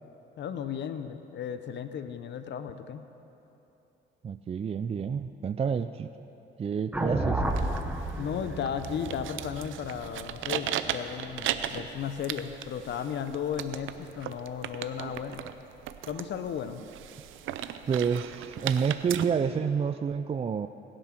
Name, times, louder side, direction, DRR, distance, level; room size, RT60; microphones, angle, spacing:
voice 1, 0.4-3.0 8.2-15.5 16.1-16.8, left 8 dB, 65° left, 10 dB, 0.7 m, -35 dB
voice 2, 4.2-6.1 6.6-7.4 17.9-20.7, right 6 dB, 30° right, 11 dB, 0.4 m, -29 dB
sound 1, 6.9-11.2, right 1 dB, 5° right, 1.2 m, -32 dB
sound 2, 7.4-19.2, right 11 dB, 80° right, 0.6 m, -37 dB
21.0 x 7.6 x 5.9 m, 3.0 s
cardioid pair, 90°, 20 cm